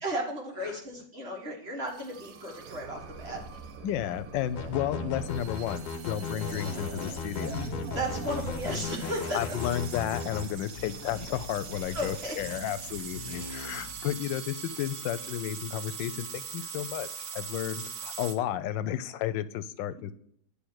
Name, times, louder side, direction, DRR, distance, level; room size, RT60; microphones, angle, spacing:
voice 1, 0.0-3.4 7.9-9.6 11.9-12.3, equal, 35° right, 0 dB, 1.7 m, -34 dB
sound 1, 1.9-18.3, right 5 dB, 60° right, 1.0 m, -41 dB
voice 2, 3.8-7.6 9.3-17.1 17.3-20.1, left 11 dB, 90° left, 14 dB, 1.3 m, -32 dB
sound 2, 4.6-10.5, left 4 dB, 70° left, 1.4 m, -36 dB
sound 3, 6.4-14.1, left 4 dB, 40° left, 0.6 m, -43 dB
9.7 x 3.4 x 6.3 m, 0.66 s
omnidirectional pair, 1.9 m